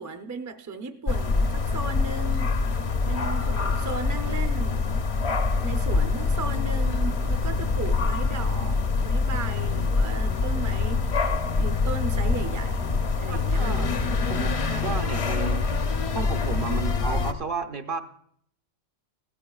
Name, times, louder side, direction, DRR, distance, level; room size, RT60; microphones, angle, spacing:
voice 1, 0.0-4.8 5.6-14.2 14.5-14.9, right 3 dB, 25° right, 0.4 m, -36 dB
sound 1, 1.1-17.3, left 4 dB, 45° left, 0.5 m, -25 dB
voice 2, 13.3-14.5 14.8-15.7 16.1-18.0, right 5 dB, 55° right, 0.7 m, -33 dB
17.0 x 14.0 x 2.3 m
omnidirectional pair, 1.2 m